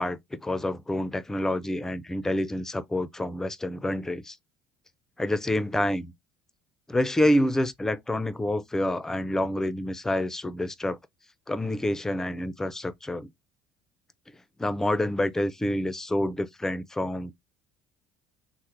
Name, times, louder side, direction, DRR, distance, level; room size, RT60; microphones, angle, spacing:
voice 1, 0.0-4.4 5.2-6.1 6.9-11.0 11.5-13.3 14.6-17.3, left 1 dB, 10° left, 0.5 m, -27 dB
3.1 x 2.0 x 3.5 m
hypercardioid pair, 75°, 4 cm